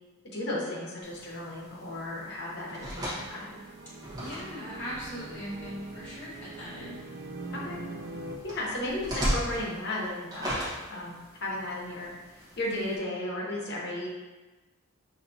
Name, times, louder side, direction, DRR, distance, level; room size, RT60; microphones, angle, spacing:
voice 1, 0.2-3.6 7.5-7.8 8.4-12.1 12.6-14.1, left 1 dB, 55° left, -4 dB, 0.9 m, -34 dB
sound 1, 1.0-13.0, equal, 20° right, 1.2 m, -39 dB
sound 2, 1.8-8.4, right 2 dB, 50° right, 0.4 m, -43 dB
voice 2, 4.2-7.0, equal, 10° left, -12 dB, 1.4 m, -40 dB
5.6 x 2.8 x 2.7 m, 1.2 s
head